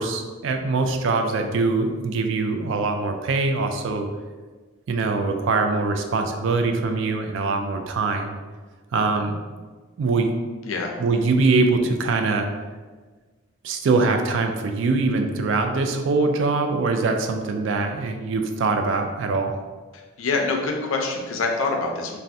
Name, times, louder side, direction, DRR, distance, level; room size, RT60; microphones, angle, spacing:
voice 1, 0.0-4.1 4.9-8.4 8.9-9.4 10.0-10.3 11.0-12.5 13.6-19.5, right 3 dB, 60° right, 5 dB, 0.3 m, -23 dB
voice 2, 20.2-22.2, left 3 dB, 70° left, 1 dB, 0.4 m, -25 dB
2.6 x 2.1 x 3.4 m, 1.4 s
head